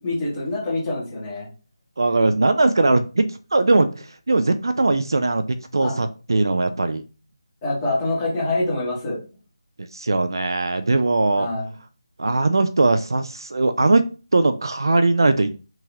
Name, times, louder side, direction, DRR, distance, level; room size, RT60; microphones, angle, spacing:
voice 1, 0.0-1.5 5.8-6.0 7.6-9.2 11.3-11.7, left 2 dB, 10° left, -9 dB, 1.5 m, -25 dB
voice 2, 2.0-5.4 5.7-7.0 9.9-11.5 12.2-14.0 14.3-15.5, right 2 dB, 50° right, 10 dB, 0.3 m, -20 dB
3.5 x 2.9 x 3.0 m, 0.34 s
figure-of-eight pair, 180°, 3 cm